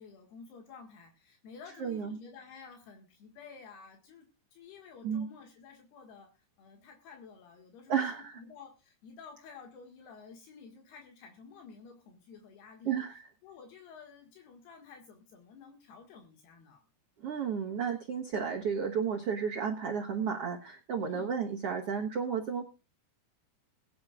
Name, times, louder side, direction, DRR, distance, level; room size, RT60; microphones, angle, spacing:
voice 1, 0.0-12.9 13.4-16.8 21.0-21.3, left 5 dB, 75° left, 2 dB, 3.8 m, -52 dB
voice 2, 1.8-2.2 5.0-5.3 7.9-8.4 12.8-13.3 17.2-22.7, right 7 dB, 80° right, 1 dB, 1.3 m, -32 dB
22.0 x 10.5 x 2.4 m, 0.31 s
omnidirectional pair, 4.7 m